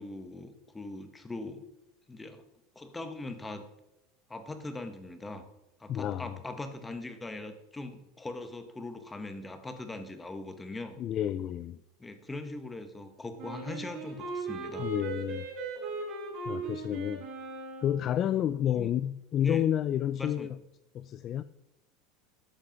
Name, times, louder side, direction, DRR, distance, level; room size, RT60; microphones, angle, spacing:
voice 1, 0.0-1.6 2.1-2.4 2.7-3.6 4.3-5.5 5.8-11.0 12.0-14.9 18.7-18.9 19.4-19.6 20.1-20.5, left 2 dB, 10° left, 1.1 m, -41 dB
voice 2, 5.9-6.4 11.0-11.8 14.8-15.5 16.5-17.2 17.8-20.6 20.9-21.4, left 10 dB, 30° left, 0.3 m, -30 dB
Wind instrument woodwind instrument, 13.4-18.1, right 3 dB, 40° right, 5.3 m, -38 dB
13.0 x 8.5 x 5.2 m
supercardioid pair, 160°, 0 cm